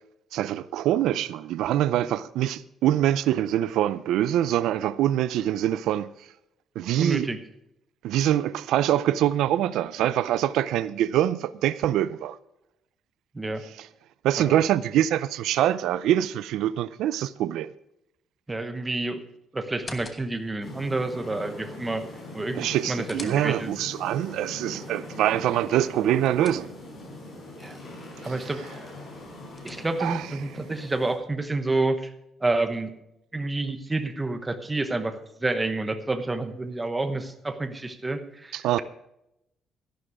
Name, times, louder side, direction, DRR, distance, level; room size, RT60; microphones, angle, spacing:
voice 1, 0.3-6.1 6.8-7.3 8.0-12.4 13.8-13.9 14.2-17.7 22.6-26.7 30.0-30.2 38.5-38.8, right 12 dB, 85° right, 0.4 m, -24 dB
voice 2, 7.0-7.4 13.3-13.6 14.4-14.6 18.5-19.2 19.5-22.0 22.3-23.7 27.6-27.8 28.2-28.6 29.6-32.1 32.4-32.9 33.3-38.8, right 2 dB, 10° right, 1.0 m, -29 dB
sound 1, 19.7-20.6 22.6-23.9 25.8-27.1 29.1-30.2, left 3 dB, 20° left, 1.2 m, -46 dB
sound 2, 20.6-31.2, left 2 dB, 35° left, 4.7 m, -42 dB
12.5 x 11.5 x 4.8 m
cardioid pair, 175°, 0 cm